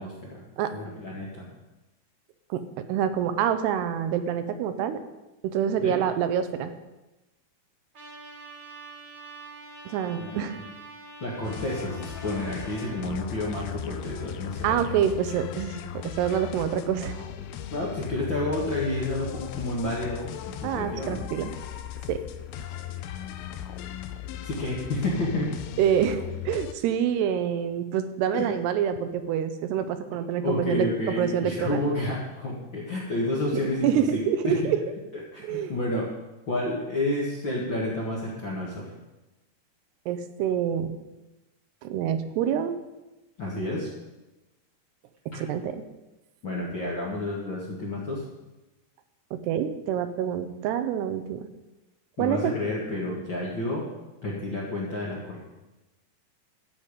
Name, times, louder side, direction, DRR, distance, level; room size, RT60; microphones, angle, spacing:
voice 1, 0.0-0.4 0.7-1.4 5.8-5.9 10.2-10.6 11.2-14.8 17.7-21.2 24.4-25.5 28.3-28.5 30.1-34.5 35.3-36.1 36.5-38.9 43.4-43.9 45.3-45.4 46.4-48.2 52.2-53.8 54.2-55.4, left 1 dB, 50° left, -5 dB, 1.5 m, -30 dB
voice 2, 2.5-5.0 5.4-6.7 9.9-10.6 14.6-17.2 20.6-21.6 22.1-22.2 25.8-31.9 33.5-34.8 35.4-35.8 40.1-40.9 41.8-42.8 45.3-45.8 49.3-51.5 52.2-52.6, right 9 dB, 85° right, 10 dB, 2.8 m, -27 dB
Trumpet, 7.9-13.0, right 3 dB, 40° right, 1.9 m, -45 dB
sound 1, 11.4-26.7, left 10 dB, 80° left, 2.4 m, -37 dB
12.5 x 8.3 x 5.1 m, 1.0 s
omnidirectional pair, 4.7 m